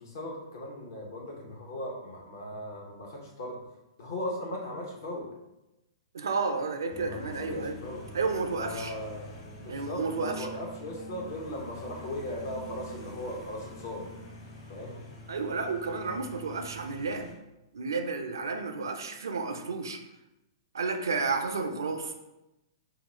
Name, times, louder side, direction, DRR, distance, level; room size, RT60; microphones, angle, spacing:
voice 1, 0.0-3.6 4.0-5.3 6.9-8.0 8.5-9.3 9.6-14.1 14.7-15.0, left 1 dB, 50° left, -1 dB, 0.7 m, -38 dB
voice 2, 6.1-7.8 8.1-8.9 9.7-10.5 15.3-17.3 17.7-20.0 20.7-22.1, right 4 dB, 65° right, 6 dB, 0.5 m, -31 dB
sound 1, 6.9-17.3, equal, 35° left, 0.9 m, -45 dB
3.8 x 2.3 x 4.1 m, 0.96 s
figure-of-eight pair, 110°, 2 cm